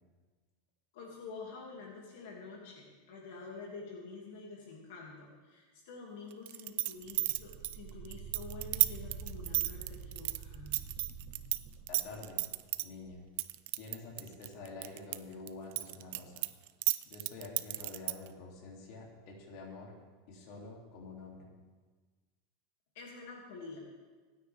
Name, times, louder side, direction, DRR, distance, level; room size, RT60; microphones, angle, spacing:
voice 1, 0.9-10.7 22.9-23.8, left 4 dB, 65° left, -2 dB, 2.5 m, -48 dB
sound 1, 6.5-11.6 11.9-12.8 13.4-15.2 15.5-18.3, right 18 dB, 55° right, 0.5 m, -32 dB
sound 2, 7.0-12.6 13.1-13.2, right 6 dB, 20° right, 1.5 m, -47 dB
voice 2, 11.9-12.4 12.8-13.2 13.8-16.5 17.0-19.9 20.3-21.5, left 3 dB, 45° left, -2 dB, 2.9 m, -48 dB
25.5 x 9.6 x 3.6 m, 1.4 s
supercardioid pair, 170°, 0 cm